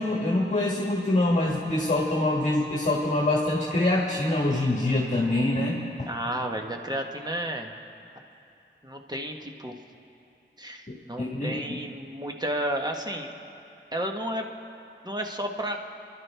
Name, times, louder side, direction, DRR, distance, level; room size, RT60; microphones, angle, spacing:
voice 1, 0.0-6.1 10.9-11.8, left 2 dB, 40° left, -3 dB, 1.5 m, -25 dB
voice 2, 6.1-7.7 8.8-9.7 10.6-13.3 13.9-14.5 15.0-15.8, right 1 dB, 20° right, 2 dB, 1.2 m, -32 dB
29.5 x 11.5 x 3.4 m, 2.7 s
wide cardioid pair, 65°, 20 cm